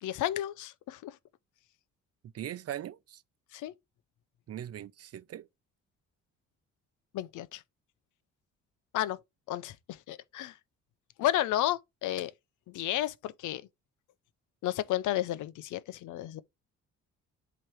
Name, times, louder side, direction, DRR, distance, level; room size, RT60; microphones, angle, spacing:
voice 1, 0.0-1.2 3.5-3.7 7.1-7.6 8.9-9.2 9.5-10.5 11.2-12.3 12.7-13.6 14.6-16.4, left 13 dB, 80° left, 0.6 m, -32 dB
voice 2, 2.3-3.2 4.5-5.5, right 11 dB, 55° right, 0.6 m, -40 dB
7.7 x 3.0 x 4.8 m
cardioid pair, 90°, 30 cm